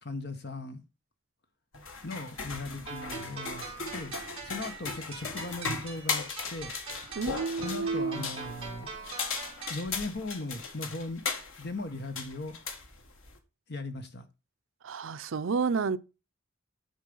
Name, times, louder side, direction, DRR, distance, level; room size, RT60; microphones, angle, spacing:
voice 1, 0.0-0.8 2.0-3.6 3.9-4.1 4.4-6.7 7.6-8.9 9.7-11.2 11.6-12.6 13.7-14.2, left 2 dB, 55° left, 1.3 m, -38 dB
sound 1, 1.7-13.4, left 4 dB, 90° left, 1.6 m, -38 dB
sound 2, 2.9-9.9, right 4 dB, 30° right, 2.9 m, -43 dB
voice 2, 7.2-8.2 14.8-16.0, right 5 dB, 75° right, 0.5 m, -30 dB
10.5 x 4.6 x 5.4 m
head